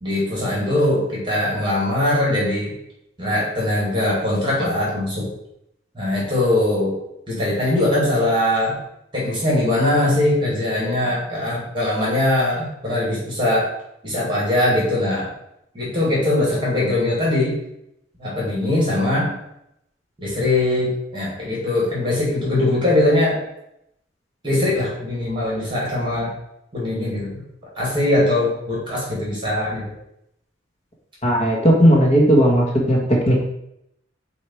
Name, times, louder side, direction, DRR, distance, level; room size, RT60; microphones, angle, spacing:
voice 1, 0.0-2.7 3.2-5.3 5.9-7.0 7.3-8.8 9.1-13.7 14.0-15.3 15.7-17.6 18.2-19.3 20.2-23.4 24.4-26.3 26.7-27.4 27.8-29.8, left 1 dB, 25° right, -5 dB, 2.3 m, -21 dB
voice 2, 31.2-33.5, equal, 35° left, -1 dB, 1.3 m, -16 dB
8.1 x 2.8 x 4.4 m, 0.79 s
head